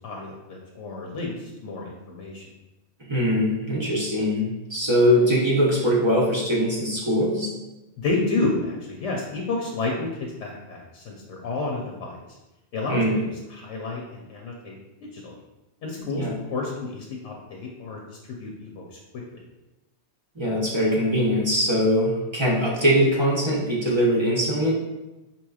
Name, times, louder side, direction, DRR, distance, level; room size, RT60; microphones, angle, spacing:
voice 1, 0.0-2.5 8.0-12.2 12.7-13.0 13.5-14.8 15.1-15.4 15.8-18.8 19.3-19.4, left 3 dB, 85° left, -1 dB, 0.9 m, -30 dB
voice 2, 3.1-7.5 12.9-13.2 16.0-16.3 20.4-24.7, equal, 30° right, -4 dB, 0.6 m, -22 dB
5.4 x 3.0 x 2.3 m, 1.0 s
omnidirectional pair, 1.2 m